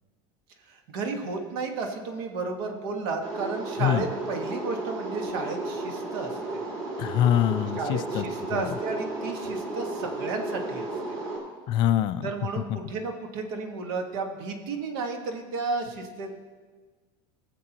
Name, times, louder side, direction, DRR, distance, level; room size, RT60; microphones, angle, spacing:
voice 1, 0.7-6.6 7.8-10.9 12.2-16.3, right 4 dB, 70° right, 3 dB, 1.6 m, -33 dB
sound 1, 3.2-11.4, right 2 dB, 35° right, 2.4 m, -33 dB
voice 2, 7.0-8.2 8.5-8.6 11.7-12.3, left 11 dB, 40° left, 13 dB, 0.4 m, -24 dB
19.5 x 7.5 x 3.0 m, 1.5 s
supercardioid pair, 160°, 12 cm